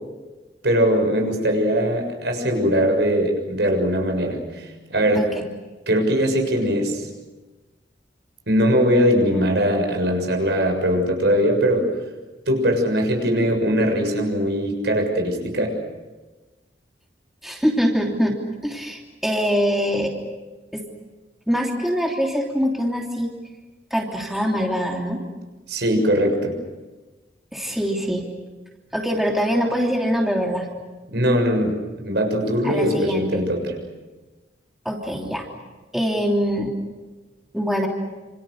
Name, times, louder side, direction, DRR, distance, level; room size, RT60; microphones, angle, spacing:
voice 1, 0.6-5.3 5.9-7.1 8.5-11.9 12.5-15.8 25.7-26.6 31.1-33.7, equal, 70° right, 3 dB, 7.0 m, -21 dB
voice 2, 5.1-5.5 9.3-9.5 17.4-18.4 18.6-20.1 20.7-20.8 21.5-23.3 23.9-25.2 27.5-28.2 28.9-30.7 32.6-33.4 34.8-35.5 35.9-36.7 37.5-37.9, equal, ahead, -1 dB, 3.1 m, -23 dB
28.5 x 27.5 x 6.6 m, 1.2 s
head